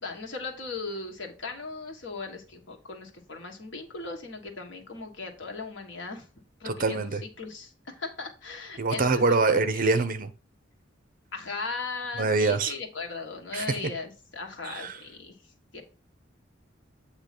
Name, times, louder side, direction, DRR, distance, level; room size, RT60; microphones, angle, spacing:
voice 1, 0.0-6.3 6.6-9.6 11.3-15.4 15.7-15.8, left 4 dB, 70° left, 1.5 m, -38 dB
voice 2, 6.6-7.2 8.8-10.3 12.2-12.7 13.5-13.9 14.6-15.0, right 3 dB, 45° right, 0.7 m, -25 dB
8.3 x 2.9 x 5.9 m
head